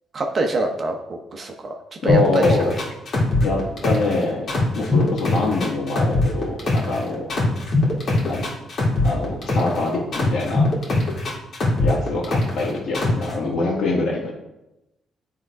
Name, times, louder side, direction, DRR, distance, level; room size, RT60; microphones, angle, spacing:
voice 1, 0.1-2.5, right 2 dB, 40° right, 3 dB, 0.9 m, -25 dB
voice 2, 2.0-2.7 3.4-4.5 4.7-7.3 8.2-8.4 9.0-10.7 11.8-14.3, left 2 dB, 70° left, -4 dB, 1.8 m, -24 dB
sound 1, 2.1-4.2 4.5-7.0 7.3-9.8 10.1-12.6 12.9-13.3, left 2 dB, 55° left, 2.2 m, -21 dB
9.1 x 3.7 x 4.7 m, 0.93 s
cardioid pair, 90°, 0 cm